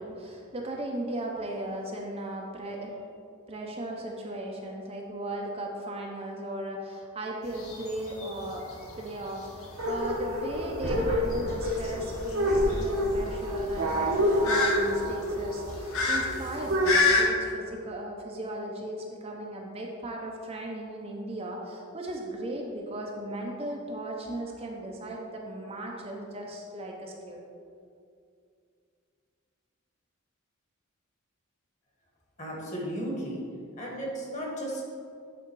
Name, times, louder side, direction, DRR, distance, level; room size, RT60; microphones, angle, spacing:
voice 1, 0.0-2.9 3.5-8.7 9.0-27.4, right 1 dB, 30° right, 0 dB, 0.6 m, -37 dB
sound 1, 7.4-17.2, left 3 dB, 70° left, 1.1 m, -31 dB
sound 2, 9.8-17.0, equal, 70° right, 1.1 m, -28 dB
voice 2, 32.4-33.4 33.8-34.9, right 1 dB, 35° left, -3 dB, 1.6 m, -34 dB
8.4 x 3.6 x 4.6 m, 2.4 s
head